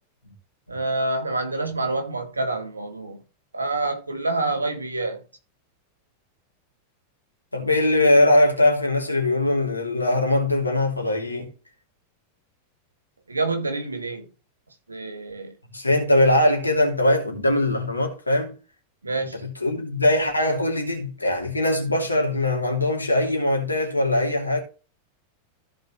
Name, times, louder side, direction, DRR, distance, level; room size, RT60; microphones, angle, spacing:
voice 1, 0.7-3.2 3.5-5.2 13.3-14.3 14.9-15.5 19.0-19.4, right 2 dB, 80° right, 1.8 m, -27 dB
voice 2, 7.5-11.5 15.7-18.6 19.1-24.6, left 1 dB, 85° left, 2.8 m, -21 dB
15.0 x 5.2 x 3.0 m
figure-of-eight pair, 90°, 0 cm